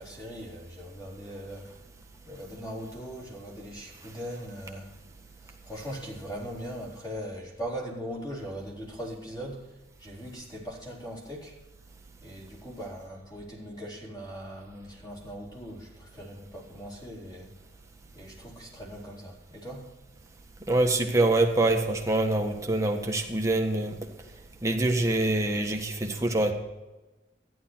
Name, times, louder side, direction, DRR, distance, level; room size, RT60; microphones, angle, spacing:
voice 1, 0.0-1.8 2.3-4.9 5.4-9.7 10.0-11.6 12.2-17.5 18.1-19.9, equal, 25° left, -3 dB, 4.1 m, -40 dB
voice 2, 20.7-23.9 24.6-26.5, right 2 dB, 20° right, 2 dB, 1.5 m, -25 dB
14.0 x 11.0 x 4.5 m, 1.1 s
head